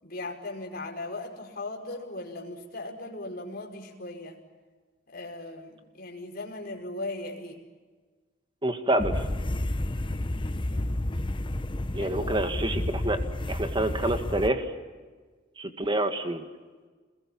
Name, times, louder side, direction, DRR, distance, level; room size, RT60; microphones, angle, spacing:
voice 1, 0.0-4.4 5.1-7.7 10.3-11.1 11.9-12.5, left 2 dB, 50° left, 1 dB, 5.2 m, -38 dB
voice 2, 8.6-9.1 11.9-13.2 13.5-14.7 15.6-16.4, right 1 dB, 25° right, 7 dB, 2.0 m, -27 dB
sound 1, 9.0-14.5, left 1 dB, 25° left, 0.9 m, -31 dB
28.0 x 21.5 x 8.9 m, 1.4 s
head